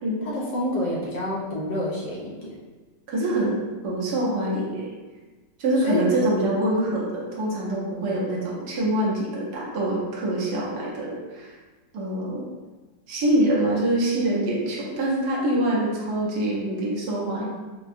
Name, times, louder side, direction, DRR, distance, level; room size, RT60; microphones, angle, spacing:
voice 1, 0.2-2.5 5.8-6.1, left 1 dB, 65° left, -5 dB, 1.2 m, -28 dB
voice 2, 3.1-4.9 5.6-11.5 11.9-12.5 13.1-17.5, right 1 dB, 65° right, -4 dB, 1.3 m, -25 dB
4.6 x 2.2 x 2.6 m, 1.3 s
omnidirectional pair, 2.0 m